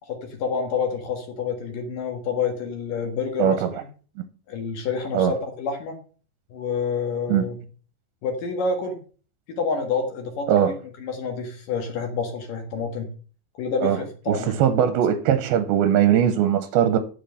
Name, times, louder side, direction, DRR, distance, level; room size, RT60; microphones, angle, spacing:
voice 1, 0.0-3.8 4.5-6.0 6.5-7.6 8.2-9.0 9.5-13.1 13.6-14.6 14.8-14.9, left 5 dB, 60° left, 3.0 m, -28 dB
voice 2, 3.4-3.7 5.1-5.3 7.3-7.4 10.5-10.7 13.8-14.0 14.3-17.0, right 9 dB, 80° right, 2.6 m, -20 dB
10.5 x 7.3 x 5.6 m
omnidirectional pair, 4.6 m